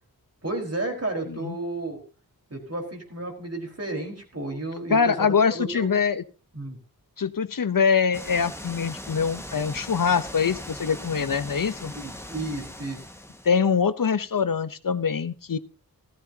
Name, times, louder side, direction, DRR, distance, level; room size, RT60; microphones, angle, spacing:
voice 1, 0.4-2.0 2.5-5.9 6.5-6.8 11.9-13.0, right 2 dB, 40° right, 2 dB, 4.7 m, -32 dB
voice 2, 4.9-6.2 7.2-11.9 13.4-15.6, left 6 dB, 65° left, 14 dB, 0.9 m, -24 dB
sound 1, 8.1-13.5, left 1 dB, 5° left, 1.8 m, -39 dB
15.5 x 14.5 x 2.9 m, 0.35 s
cardioid pair, 45°, 36 cm